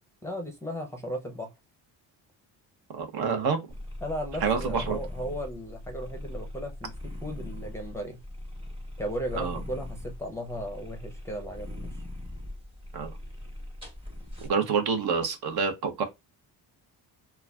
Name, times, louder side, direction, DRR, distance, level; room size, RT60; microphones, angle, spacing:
voice 1, 0.2-1.5 4.0-8.2 9.0-11.9, equal, 5° left, 0.5 m, -36 dB
voice 2, 2.9-3.6 4.4-5.0 9.4-9.6 12.9-13.1 14.5-16.0, right 5 dB, 65° right, 0.8 m, -27 dB
sound 1, 3.7-14.5, left 1 dB, 15° right, 1.0 m, -40 dB
2.3 x 2.3 x 3.3 m
cardioid pair, 125°, 40 cm